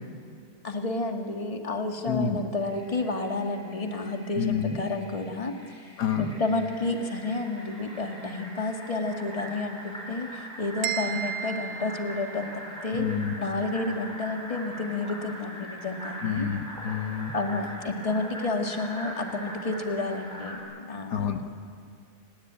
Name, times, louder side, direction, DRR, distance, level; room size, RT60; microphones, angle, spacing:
voice 1, 0.6-5.6 6.2-13.1 13.4-16.5 17.3-21.3, left 2 dB, 20° left, 4 dB, 1.8 m, -30 dB
voice 2, 2.1-2.4 4.4-4.8 6.0-6.3 12.9-13.3 16.2-17.3 21.1-21.5, left 7 dB, 85° left, 6 dB, 2.1 m, -28 dB
Fill (with liquid), 2.6-20.6, equal, 5° left, 6.7 m, -42 dB
sound 1, 10.8-12.8, right 10 dB, 75° right, 1.9 m, -34 dB
29.5 x 19.0 x 8.8 m, 2.3 s
omnidirectional pair, 1.7 m